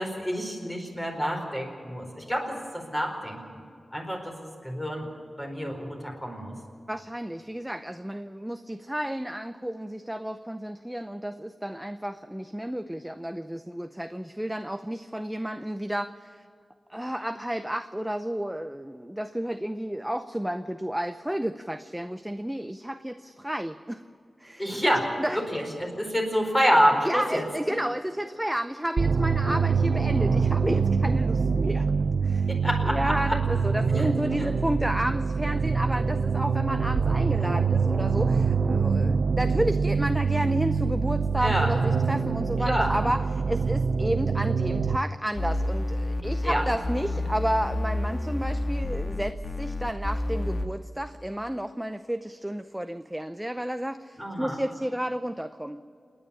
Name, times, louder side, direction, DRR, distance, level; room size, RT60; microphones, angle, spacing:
voice 1, 0.0-3.6 3.9-5.1 5.4-6.6 24.6-25.0 25.5-27.4 32.5-33.1 33.9-34.1 34.4-34.5 41.4-41.7 42.7-42.9 46.4-46.6 54.2-54.6, equal, 10° left, 1 dB, 4.6 m, -27 dB
voice 2, 6.9-16.4 16.9-24.0 24.4-24.7 25.2-25.4 27.0-31.9 32.2-32.6 32.8-55.8, right 1 dB, 5° right, 9 dB, 0.6 m, -31 dB
sound 1, 29.0-45.0, right 5 dB, 60° right, 0.5 m, -25 dB
sound 2, 45.4-50.7, left 1 dB, 40° left, 1.5 m, -29 dB
28.5 x 10.0 x 9.8 m, 2.4 s
wide cardioid pair, 115°, 0 cm